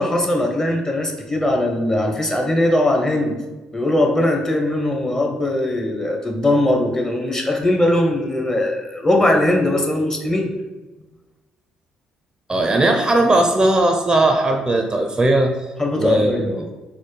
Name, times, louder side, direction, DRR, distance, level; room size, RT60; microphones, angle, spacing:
voice 1, 0.0-3.4 3.7-10.5 15.8-16.7, left 1 dB, 20° left, 2 dB, 0.7 m, -20 dB
voice 2, 12.5-15.5 16.0-16.4, right 2 dB, 25° right, 3 dB, 0.4 m, -18 dB
4.1 x 2.0 x 3.1 m, 1.2 s
hypercardioid pair, 55°, 3 cm